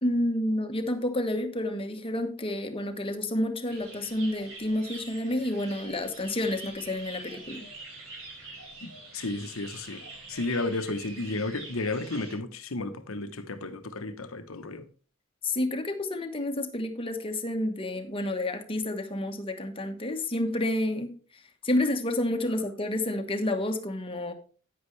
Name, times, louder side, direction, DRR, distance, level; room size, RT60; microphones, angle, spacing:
voice 1, 0.0-7.7 15.4-21.1 21.6-24.3, left 1 dB, 25° left, 1.3 m, -29 dB
sound 1, 3.7-12.3, right 2 dB, 80° right, 5.3 m, -45 dB
voice 2, 8.8-10.0 10.3-14.8, left 2 dB, 80° left, 1.0 m, -33 dB
9.8 x 9.6 x 3.3 m
head